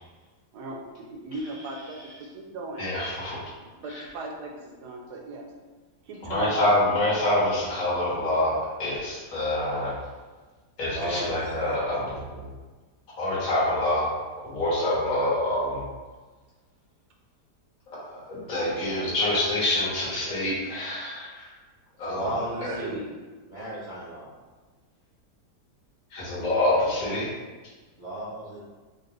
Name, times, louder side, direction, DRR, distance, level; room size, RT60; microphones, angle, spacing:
voice 1, 0.5-2.9 3.6-5.5 6.0-6.8 11.1-11.2 22.4-23.0, right 2 dB, 80° right, 1 dB, 1.2 m, -38 dB
voice 2, 1.3-2.2 10.9-11.4 22.0-23.0 23.5-24.3 28.0-28.6, right 1 dB, 60° right, -10 dB, 0.4 m, -35 dB
voice 3, 2.8-3.4 3.9-4.0 6.2-9.9 10.8-12.4 13.2-14.1 14.4-15.8 17.9-21.5 22.0-22.3 22.6-22.8 26.1-27.3, left 1 dB, 55° left, -8 dB, 1.7 m, -26 dB
4.3 x 2.4 x 3.2 m, 1.3 s
omnidirectional pair, 1.8 m